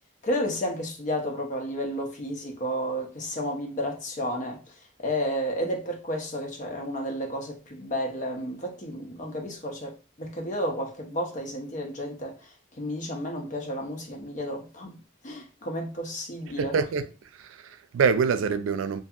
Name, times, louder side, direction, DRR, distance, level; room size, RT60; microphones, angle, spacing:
voice 1, 0.2-4.6 5.0-12.3 12.8-15.0 15.2-16.7, equal, 40° left, 0.6 m, -31 dB
voice 2, 16.6-17.1 17.3-19.0, right 5 dB, 85° right, 0.3 m, -25 dB
2.6 x 2.6 x 2.4 m
head